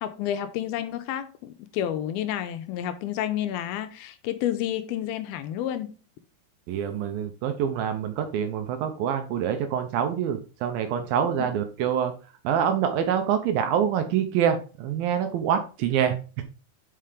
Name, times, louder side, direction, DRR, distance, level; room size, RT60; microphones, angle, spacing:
voice 1, 0.0-6.0 11.4-11.5, left 11 dB, 80° left, 2.3 m, -30 dB
voice 2, 6.7-12.1 12.4-16.4, right 8 dB, 75° right, 2.4 m, -26 dB
5.7 x 5.7 x 4.9 m
omnidirectional pair, 4.6 m